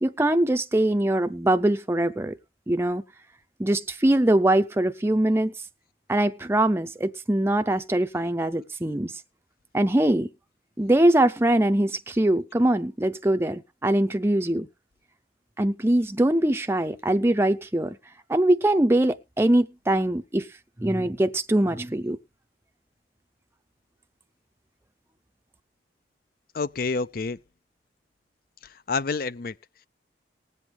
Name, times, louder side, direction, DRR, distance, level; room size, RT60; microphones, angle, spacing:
voice 1, 0.0-2.4 2.7-3.0 3.6-5.5 6.1-9.1 9.7-10.3 10.8-14.7 15.6-18.0 18.3-20.5 20.8-22.2, right 1 dB, 15° right, 0.5 m, -22 dB
voice 2, 26.5-27.4 28.9-29.5, left 4 dB, 55° left, 0.5 m, -28 dB
20.0 x 8.0 x 3.3 m
head